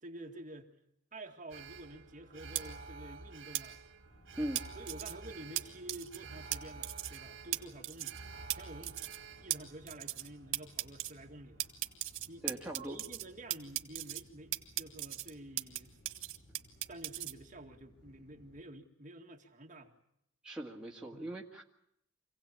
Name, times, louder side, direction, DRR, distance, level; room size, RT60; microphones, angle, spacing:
voice 1, 0.0-0.7 1.1-3.8 4.8-8.2 8.5-9.1 9.4-11.7 12.3-16.0 16.9-19.9 21.1-21.2, right 1 dB, 40° right, 1 dB, 2.1 m, -50 dB
Alarm, 1.5-11.8 12.1-12.2, right 4 dB, 65° right, 1.4 m, -51 dB
sound 1, 2.6-2.7 3.5-3.6 4.6-5.1 5.6-5.7 5.9-6.2 6.5-6.6 6.8-7.2 7.5-7.6 7.8-8.2 8.5-8.6 8.8-9.2 9.5-9.6 9.9-10.3 10.5-11.1 11.6-13.3 13.5-14.2 14.5-15.8 16.1-17.3, right 14 dB, 85° right, 1.6 m, -36 dB
sound 2, 4.0-18.6, equal, 60° left, 5.4 m, -62 dB
voice 2, 12.4-13.0 20.4-21.6, right 1 dB, 5° right, -3 dB, 1.9 m, -40 dB
26.5 x 17.0 x 8.7 m, 0.75 s
head